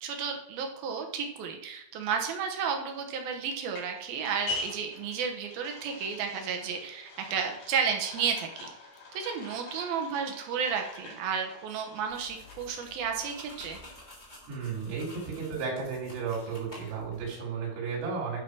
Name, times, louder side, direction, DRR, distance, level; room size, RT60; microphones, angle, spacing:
voice 1, 0.0-8.7 9.1-13.8, right 6 dB, 70° right, 3 dB, 2.3 m, -32 dB
sound 1, 2.9-14.1, left 3 dB, 55° left, 6.3 m, -45 dB
sound 2, 12.1-17.2, left 1 dB, 10° left, 2.6 m, -50 dB
voice 2, 14.5-18.4, right 5 dB, 90° right, -3 dB, 5.2 m, -34 dB
11.5 x 5.7 x 4.6 m, 0.82 s
omnidirectional pair, 5.5 m